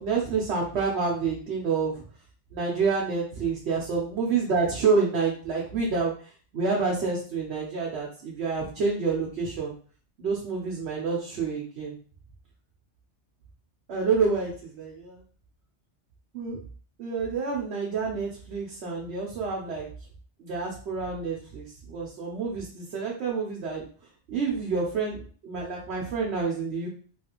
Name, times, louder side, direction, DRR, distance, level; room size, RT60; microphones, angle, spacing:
voice 1, 0.0-2.0 2.5-6.1 6.5-9.7 10.2-11.9 13.9-15.2 16.3-16.6 17.0-19.9 20.4-23.9 24.3-26.9, right 4 dB, 70° right, -2 dB, 0.9 m, -28 dB
3.2 x 2.3 x 2.9 m, 0.42 s
omnidirectional pair, 1.2 m